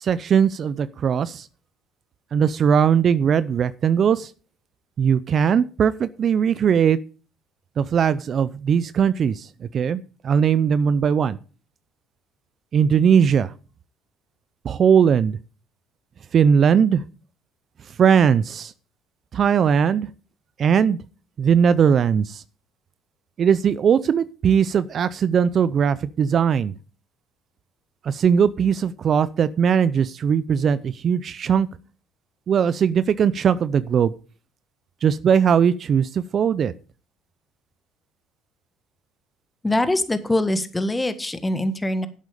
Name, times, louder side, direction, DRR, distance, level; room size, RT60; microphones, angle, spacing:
voice 1, 0.0-1.4 2.3-4.3 5.0-7.0 7.8-9.4 9.7-11.4 12.7-13.5 14.6-15.4 16.3-17.0 18.0-18.7 19.3-20.1 20.6-21.0 21.4-22.4 23.4-26.7 28.1-31.7 32.5-34.1 35.0-36.7, right 7 dB, 45° right, 16 dB, 0.6 m, -19 dB
voice 2, 39.6-42.1, left 1 dB, 15° left, 10 dB, 1.6 m, -23 dB
11.5 x 8.1 x 5.1 m, 0.37 s
supercardioid pair, 85°, 0 cm